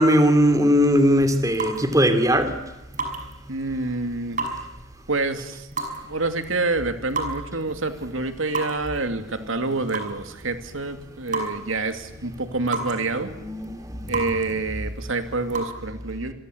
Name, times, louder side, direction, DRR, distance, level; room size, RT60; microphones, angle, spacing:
voice 1, 0.0-2.6 13.4-14.1, equal, 15° right, 9 dB, 2.9 m, -19 dB
sound 1, 0.7-15.7, right 3 dB, 40° right, 5.9 m, -35 dB
voice 2, 3.5-4.4 5.1-5.7 6.1-13.3 14.1-16.3, right 3 dB, 75° right, 8 dB, 2.7 m, -27 dB
28.0 x 23.5 x 8.1 m, 0.98 s
head